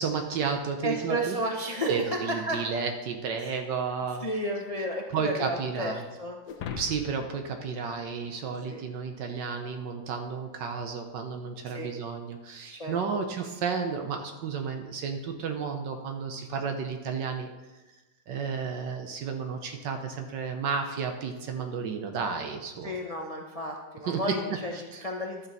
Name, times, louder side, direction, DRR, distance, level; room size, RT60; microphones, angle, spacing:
voice 1, 0.0-1.4 1.9-4.3 5.1-6.0 6.8-17.5 18.3-22.9 24.1-24.4 24.9-25.1, right 5 dB, 75° right, 5 dB, 1.5 m, -32 dB
voice 2, 0.8-1.9 2.5-2.6 3.4-3.6 4.1-5.9 6.2-6.4 8.7-8.8 11.7-11.9 12.7-13.2 16.4-16.5 22.8-25.5, equal, 50° left, 0 dB, 0.4 m, -33 dB
sound 1, 6.5-9.0, left 6 dB, 65° left, 1.2 m, -41 dB
11.0 x 7.1 x 4.1 m, 1.1 s
omnidirectional pair, 2.0 m